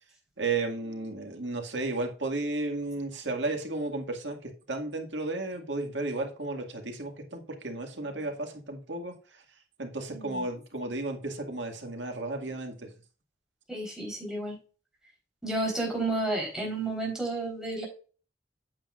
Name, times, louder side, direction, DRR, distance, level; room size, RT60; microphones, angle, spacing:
voice 1, 0.4-9.1 9.8-12.9, right 2 dB, 75° right, 4 dB, 2.1 m, -33 dB
voice 2, 10.1-10.4 13.7-14.6 15.4-17.8, right 2 dB, 5° right, -2 dB, 3.9 m, -31 dB
8.7 x 7.7 x 2.5 m, 0.36 s
head